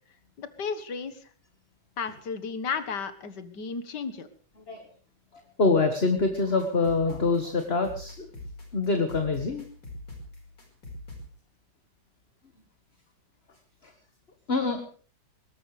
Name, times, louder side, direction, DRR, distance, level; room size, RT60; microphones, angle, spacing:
voice 1, 0.4-1.3 2.0-4.3, left 5 dB, 75° left, 12 dB, 2.1 m, -33 dB
voice 2, 5.6-8.3 8.7-9.6 13.8-13.9 14.5-14.8, left 3 dB, 35° left, 6 dB, 1.8 m, -25 dB
sound 1, 6.2-11.3, left 1 dB, 90° left, 5.6 m, -43 dB
21.5 x 18.0 x 3.4 m, 0.43 s
omnidirectional pair, 1.9 m